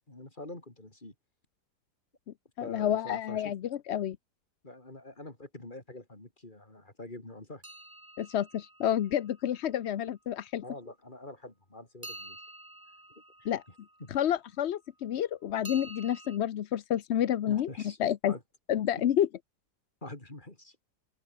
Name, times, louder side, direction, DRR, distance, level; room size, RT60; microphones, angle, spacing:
voice 1, 0.1-1.1 2.6-3.5 4.6-7.6 10.6-12.4 13.4-13.5 14.0-14.1 17.5-18.0 18.3-18.4 20.0-20.8, left 2 dB, 30° left, 4.6 m, -45 dB
voice 2, 2.6-4.2 8.2-10.6 13.4-13.6 14.1-17.7 18.0-18.3 18.7-19.3, left 10 dB, 55° left, 0.8 m, -29 dB
sound 1, 7.6-9.7 12.0-14.4 15.6-16.4, right 1 dB, 10° right, 2.9 m, -49 dB
open air
omnidirectional pair, 1.7 m